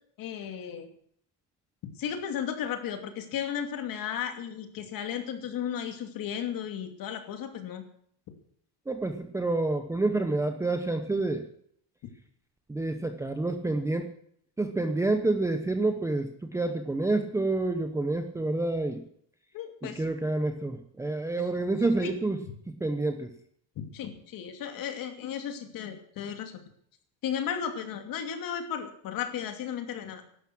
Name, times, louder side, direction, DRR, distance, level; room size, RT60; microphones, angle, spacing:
voice 1, 0.2-0.9 2.0-7.8 19.5-20.0 21.4-21.5 22.0-22.1 23.9-26.6 27.2-30.2, left 8 dB, 45° left, 6 dB, 2.7 m, -34 dB
voice 2, 8.9-11.4 12.7-14.1 14.6-19.0 19.8-22.4 22.7-23.3, right 2 dB, 5° right, 7 dB, 0.8 m, -28 dB
17.0 x 12.0 x 6.1 m, 0.65 s
cardioid pair, 165°, 45 cm